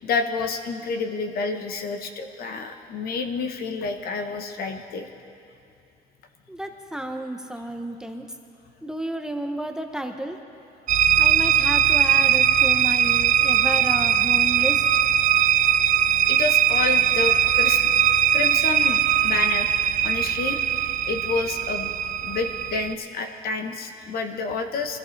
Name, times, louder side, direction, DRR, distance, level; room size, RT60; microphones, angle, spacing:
voice 1, 0.0-5.1 16.3-17.8 18.3-19.7 20.0-20.6 21.0-21.9 22.2-25.0, left 4 dB, 65° left, 6 dB, 1.1 m, -29 dB
voice 2, 6.5-8.2 8.8-10.4 11.2-14.9, right 1 dB, 5° right, 4 dB, 0.9 m, -32 dB
sound 1, 10.9-22.9, right 9 dB, 50° right, 0.4 m, -20 dB
21.0 x 14.5 x 3.3 m, 2.6 s
cardioid pair, 110°, 17 cm